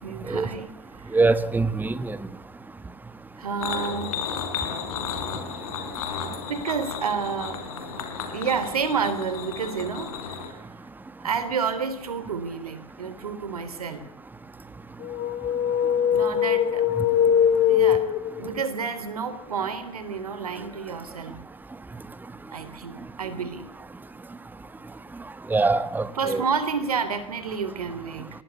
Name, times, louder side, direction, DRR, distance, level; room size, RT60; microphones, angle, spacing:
voice 1, 0.0-1.2 3.4-4.2 6.5-7.6 8.0-10.7 11.2-14.1 16.1-16.8 17.7-18.1 18.4-21.4 22.5-23.7 26.1-28.3, right 6 dB, 85° right, 3.4 m, -30 dB
voice 2, 1.1-2.2 25.5-26.4, right 3 dB, 10° right, 1.3 m, -23 dB
sound 1, 3.6-10.5, left 6 dB, 75° left, 5.4 m, -33 dB
sound 2, 15.0-18.6, left 9 dB, 45° left, 2.2 m, -22 dB
23.0 x 19.0 x 8.3 m
hypercardioid pair, 85°, 19 cm